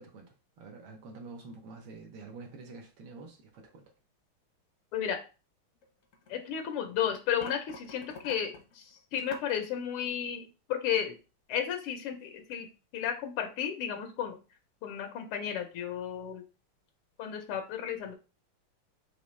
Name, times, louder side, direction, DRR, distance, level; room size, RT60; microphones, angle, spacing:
voice 1, 0.0-3.8, right 3 dB, 75° right, 1.6 m, -47 dB
sound 1, 5.8-6.7 7.0-9.5, left 3 dB, 60° left, 0.8 m, -46 dB
voice 2, 6.3-11.2 11.5-12.7 12.9-14.4 14.8-16.4 17.2-18.1, left 9 dB, 85° left, 1.6 m, -33 dB
4.8 x 3.1 x 3.1 m
omnidirectional pair, 2.4 m